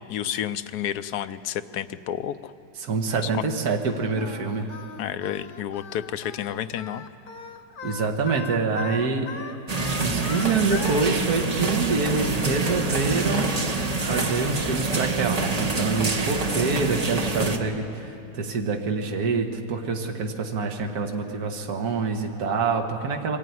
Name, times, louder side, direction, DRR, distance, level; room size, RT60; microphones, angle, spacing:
voice 1, 0.1-2.5 3.2-3.4 5.0-7.0, left 10 dB, 70° left, 11 dB, 1.1 m, -30 dB
voice 2, 2.8-4.7 7.8-9.3 10.0-13.7 14.1-23.4, right 4 dB, 60° right, 3 dB, 1.9 m, -26 dB
Singing, 4.2-11.1, left 5 dB, 50° left, 0.6 m, -38 dB
sound 1, 9.7-17.6, right 3 dB, 30° right, 0.9 m, -26 dB
23.0 x 14.0 x 9.4 m, 2.6 s
omnidirectional pair, 1.9 m